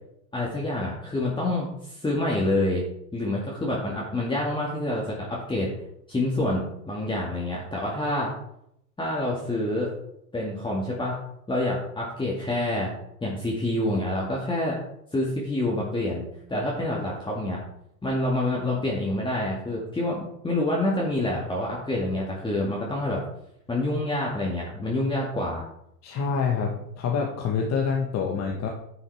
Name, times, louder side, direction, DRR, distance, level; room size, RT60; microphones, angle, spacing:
voice 1, 0.3-2.8 3.1-5.7 6.1-8.3 9.0-9.9 10.3-11.1 11.5-12.9 13.2-14.7 15.1-16.2 16.5-17.6 18.0-23.2 23.7-25.6, left 1 dB, 10° left, -4 dB, 2.1 m, -27 dB
voice 2, 26.0-28.7, left 5 dB, 35° left, 1 dB, 1.4 m, -26 dB
11.0 x 7.0 x 3.5 m, 0.76 s
hypercardioid pair, 90°, 48 cm